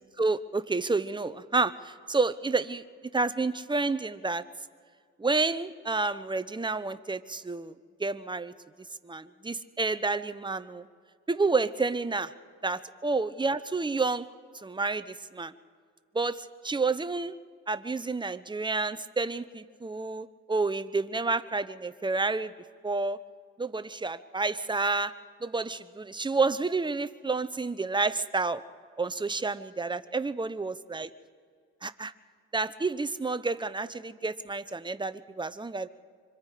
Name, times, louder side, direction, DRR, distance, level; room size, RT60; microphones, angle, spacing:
voice 1, 0.2-2.8 3.1-4.4 5.2-8.5 9.0-10.9 11.3-12.3 12.6-14.3 14.6-15.5 16.1-17.3 17.7-22.5 22.8-23.2 23.6-25.1 25.4-28.6 29.0-31.1 31.8-32.1 32.5-35.9, right 3 dB, 15° right, 13 dB, 0.8 m, -29 dB
25.5 x 24.5 x 5.0 m, 2.1 s
cardioid pair, 90°, 30 cm